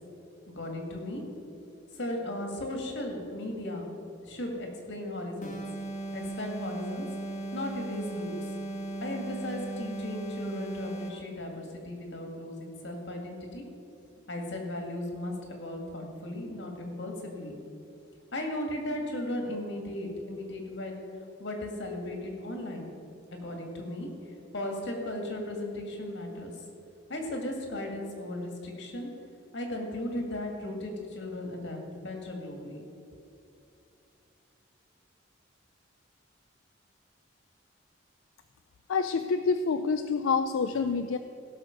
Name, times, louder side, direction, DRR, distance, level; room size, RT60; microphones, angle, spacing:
voice 1, 0.5-1.2 1.9-3.9 4.2-5.6 6.1-7.1 7.5-8.5 9.0-13.6 14.3-17.6 18.3-21.1 21.4-22.9 23.4-24.1 24.5-26.5 27.1-29.1 29.5-32.8, left 1 dB, 65° left, 2 dB, 2.1 m, -36 dB
sound 1, 5.4-11.3, right 2 dB, 40° left, 1.2 m, -37 dB
voice 2, 38.9-41.2, left 5 dB, 85° left, 9 dB, 0.4 m, -27 dB
16.5 x 6.5 x 5.2 m, 2.7 s
head